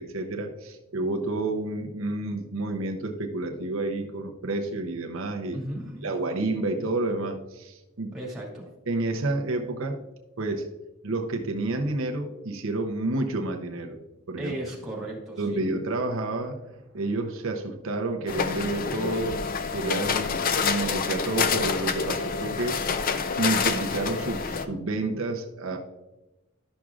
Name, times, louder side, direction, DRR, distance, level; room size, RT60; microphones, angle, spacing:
voice 1, 0.0-5.6 6.0-8.1 8.9-10.0 10.4-10.7 11.0-14.0 14.3-14.6 15.4-19.4 19.7-22.8 23.4-25.8, right 2 dB, 75° right, 3 dB, 0.7 m, -30 dB
voice 2, 5.5-6.1 8.1-8.6 14.4-15.7, right 1 dB, ahead, -5 dB, 2.3 m, -36 dB
sound 1, 18.3-24.7, left 5 dB, 45° left, 0.5 m, -27 dB
11.5 x 6.1 x 2.4 m, 1.0 s
head